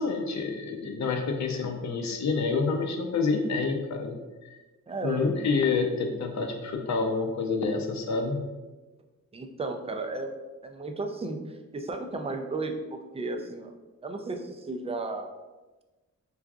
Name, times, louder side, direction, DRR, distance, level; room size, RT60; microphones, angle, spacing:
voice 1, 0.0-4.6 5.0-8.4, left 4 dB, 60° left, 3 dB, 0.6 m, -28 dB
voice 2, 4.9-5.2 9.3-10.4 10.6-11.4 11.7-13.7 14.0-15.3, right 3 dB, 20° right, 4 dB, 0.3 m, -34 dB
4.7 x 2.5 x 2.3 m, 1.2 s
wide cardioid pair, 100°, 32 cm